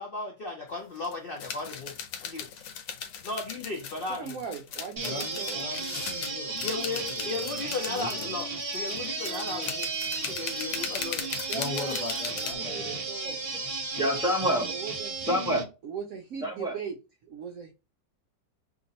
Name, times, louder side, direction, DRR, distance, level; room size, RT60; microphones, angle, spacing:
voice 1, 0.0-1.9 2.2-2.5 3.2-4.4 6.6-8.5 8.7-9.9 10.3-11.3 11.9-12.0, left 3 dB, 70° left, 0.5 m, -35 dB
sound 1, 0.7-12.5, left 7 dB, 85° left, 1.3 m, -38 dB
voice 2, 4.1-5.6 11.5-12.1 12.3-13.4 14.6-15.4 15.8-17.0 17.2-17.7, right 7 dB, 70° right, 0.8 m, -39 dB
voice 3, 5.0-8.3 9.4-9.6 11.5-12.8, left 3 dB, 40° left, 0.7 m, -39 dB
sound 2, 5.0-15.6, right 3 dB, 40° right, 1.0 m, -34 dB
voice 4, 14.0-14.7 15.2-15.6 16.4-16.8, equal, 5° right, 1.1 m, -27 dB
2.9 x 2.6 x 4.0 m
omnidirectional pair, 1.9 m